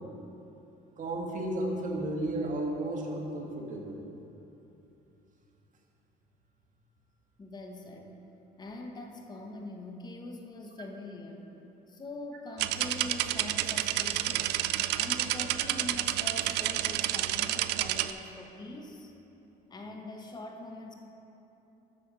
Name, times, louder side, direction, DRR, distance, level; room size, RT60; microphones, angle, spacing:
voice 1, 1.0-4.0 15.6-15.7, right 1 dB, 50° right, 0 dB, 1.4 m, -33 dB
voice 2, 7.4-8.1 8.6-11.5 11.9-14.6 14.9-19.1 19.7-20.9, left 2 dB, 25° left, 2 dB, 1.0 m, -43 dB
sound 1, 12.6-18.1, right 13 dB, 80° right, 0.4 m, -30 dB
8.2 x 6.3 x 6.6 m, 3.0 s
cardioid pair, 110°, 17 cm